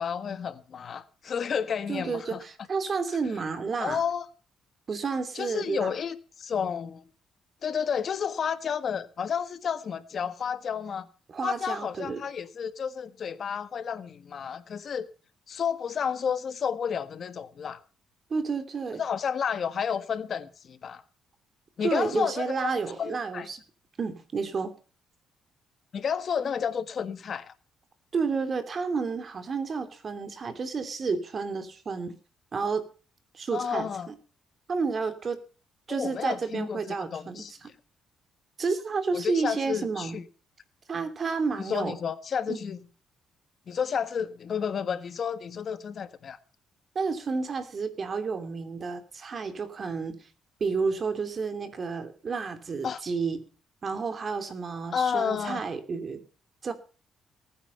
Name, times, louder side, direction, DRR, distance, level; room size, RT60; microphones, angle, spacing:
voice 1, 0.0-2.4 3.8-4.2 5.3-7.0 7.6-11.1 11.4-15.1 15.5-17.8 19.0-21.0 21.8-22.7 23.0-23.5 25.9-27.5 33.5-34.1 35.9-37.7 39.1-40.2 41.7-42.9 43.7-46.4 52.8-53.0 54.9-55.6, left 7 dB, 55° left, 1.4 m, -31 dB
voice 2, 1.9-4.0 4.9-5.9 11.3-12.2 18.3-19.0 21.8-23.6 24.0-24.7 28.1-32.1 32.5-32.8 33.3-34.1 34.7-35.4 35.9-37.5 38.6-40.2 40.9-42.0 42.5-42.6 46.9-50.3 50.6-53.5 53.8-56.2 56.6-56.7, right 4 dB, 45° right, 3.0 m, -31 dB
19.0 x 9.4 x 5.7 m
cardioid pair, 90°, 0 cm